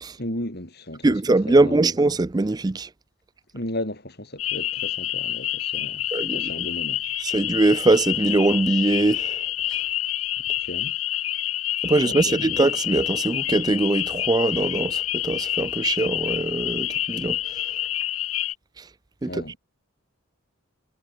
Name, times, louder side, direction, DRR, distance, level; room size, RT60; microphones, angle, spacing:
voice 1, 0.2-2.0 3.5-7.0 10.6-11.0 12.0-12.6 19.2-19.6, left 1 dB, 50° left, 5.9 m, -35 dB
voice 2, 1.0-2.9 6.1-6.7 7.2-9.4 11.8-17.6 18.8-18.9 19.2-19.5, right 2 dB, 20° right, 0.4 m, -22 dB
sound 1, 4.4-18.5, left 13 dB, 85° left, 2.4 m, -28 dB
head